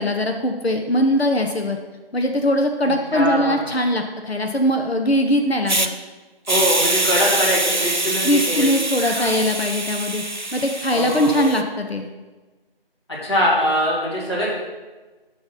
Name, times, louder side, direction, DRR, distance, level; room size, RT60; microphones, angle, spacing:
voice 1, 0.0-1.8 2.1-5.9 8.2-10.2 10.5-12.1, equal, 90° left, 4 dB, 0.9 m, -21 dB
voice 2, 2.8-3.6 6.5-8.7 9.2-9.3 10.9-11.4 13.2-14.5, left 1 dB, 25° left, -9 dB, 2.2 m, -22 dB
Hiss, 5.7-5.9 6.5-11.6, right 2 dB, 50° right, 0.5 m, -24 dB
9.1 x 3.9 x 5.4 m, 1.2 s
figure-of-eight pair, 170°, 30 cm